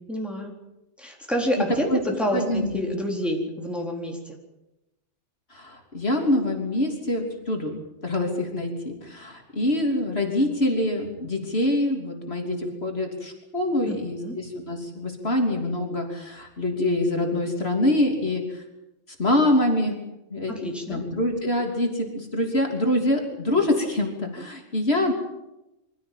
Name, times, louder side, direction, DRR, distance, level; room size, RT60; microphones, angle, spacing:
voice 1, 0.1-0.5 1.0-4.4 13.8-14.4 20.5-21.0, equal, ahead, 0 dB, 4.1 m, -28 dB
voice 2, 2.3-2.8 5.5-18.6 19.2-19.9 20.3-25.1, left 1 dB, 50° left, 2 dB, 3.4 m, -25 dB
24.5 x 16.0 x 8.9 m, 0.96 s
omnidirectional pair, 1.3 m